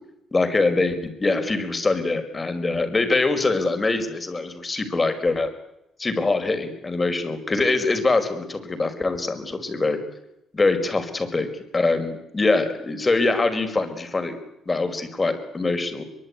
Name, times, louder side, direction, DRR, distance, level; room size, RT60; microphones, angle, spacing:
voice 1, 0.3-5.5 6.0-10.0 10.5-11.5 11.7-14.4 14.6-16.0, left 3 dB, 25° left, 9 dB, 5.1 m, -23 dB
24.0 x 23.5 x 9.8 m, 0.85 s
cardioid pair, 90°, 0 cm